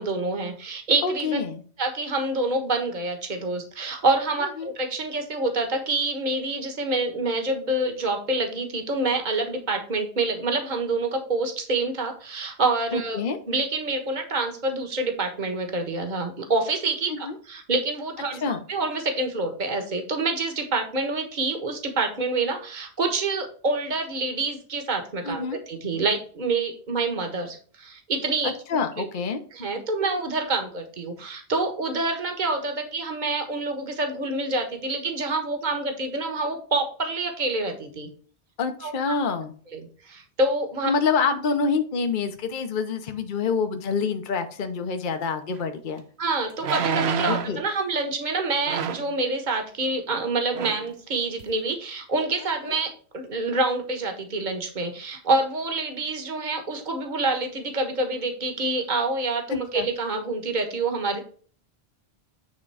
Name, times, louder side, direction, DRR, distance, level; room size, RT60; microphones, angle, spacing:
voice 1, 0.0-1.4 1.8-28.5 29.0-29.1 29.5-38.1 38.8-39.2 39.7-40.9 46.2-61.2, right 3 dB, 45° right, 5 dB, 1.5 m, -27 dB
voice 2, 1.0-1.6 4.4-4.7 12.9-13.4 17.2-17.3 18.4-18.6 25.2-25.6 28.4-29.4 38.6-39.5 40.8-46.0 47.2-47.6 59.5-59.9, left 5 dB, 50° left, 6 dB, 0.9 m, -27 dB
sound 1, 45.6-45.7 46.6-47.6 48.7-49.1 50.1-50.3 50.5-50.9 51.4-51.5, right 6 dB, 70° right, 0.9 m, -28 dB
9.6 x 3.7 x 4.8 m, 0.43 s
omnidirectional pair, 1.1 m